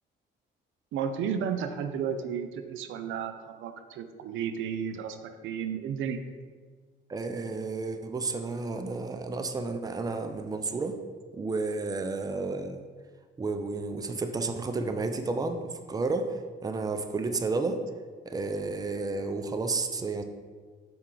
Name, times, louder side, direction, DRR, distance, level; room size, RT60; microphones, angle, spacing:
voice 1, 0.9-6.2, right 7 dB, 80° right, 8 dB, 0.5 m, -33 dB
voice 2, 7.1-11.0 11.3-12.9 13.4-17.8 18.3-20.2, right 3 dB, 20° right, 8 dB, 0.5 m, -31 dB
6.0 x 4.2 x 3.8 m, 1.5 s
cardioid pair, 90°, 20 cm